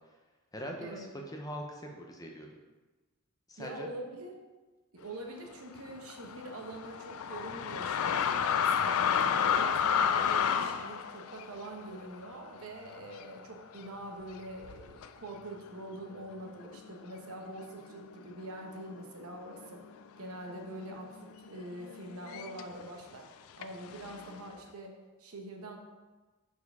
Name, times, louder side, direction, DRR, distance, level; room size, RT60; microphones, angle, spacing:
voice 1, 0.5-2.5 3.5-3.9, equal, 15° left, 1 dB, 0.6 m, -42 dB
voice 2, 3.6-4.3 4.9-19.8 20.2-23.3 23.6-25.8, right 1 dB, 70° right, 2 dB, 1.0 m, -44 dB
sound 1, 5.8-13.4 13.7-13.9 14.6-15.1 15.8-15.9 16.2-17.9 18.2-18.8 19.0-22.8 23.6-24.5, left 7 dB, 65° left, 0.3 m, -32 dB
4.8 x 4.4 x 5.3 m, 1.2 s
head